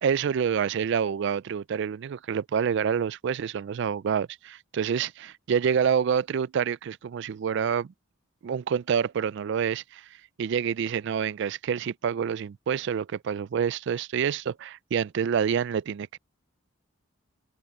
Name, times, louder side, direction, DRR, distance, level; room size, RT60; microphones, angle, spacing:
voice 1, 0.0-7.9 8.4-10.1 10.4-16.2, right 7 dB, 55° right, 0.3 m, -27 dB
open air
head